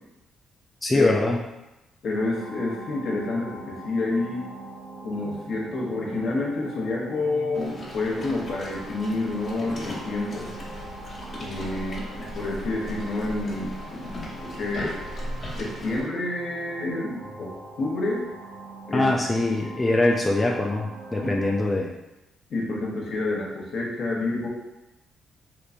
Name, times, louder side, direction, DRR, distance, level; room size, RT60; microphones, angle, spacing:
voice 1, 0.8-1.4 18.9-21.9, left 2 dB, 20° left, 0 dB, 0.3 m, -23 dB
voice 2, 2.0-4.5 5.0-10.5 11.4-14.9 15.6-17.5 17.8-18.3 18.9-19.1 21.2-21.3 22.5-24.5, left 2 dB, 65° left, -3 dB, 0.9 m, -28 dB
sound 1, 2.1-21.7, right 2 dB, 50° right, 0.6 m, -42 dB
sound 2, 7.5-16.0, left 1 dB, 40° left, 1.0 m, -37 dB
3.2 x 3.0 x 2.5 m, 0.98 s
cardioid pair, 90°, 0 cm